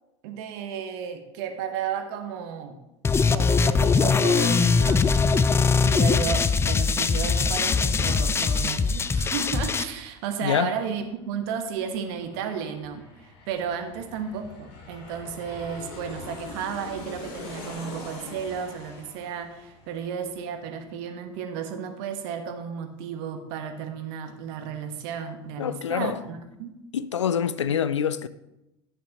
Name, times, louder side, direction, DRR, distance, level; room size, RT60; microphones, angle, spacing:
voice 1, 0.2-2.8 3.3-5.2 5.5-26.7, right 7 dB, 60° right, 1.2 m, -33 dB
sound 1, 3.0-9.8, left 5 dB, 15° left, 0.4 m, -21 dB
Aircraft, 10.0-20.8 21.1-21.2, left 3 dB, 60° left, 2.3 m, -44 dB
voice 2, 10.4-10.7 25.6-26.2 26.9-28.3, left 8 dB, 85° left, 0.4 m, -25 dB
10.5 x 8.4 x 2.9 m
hypercardioid pair, 80°, 15 cm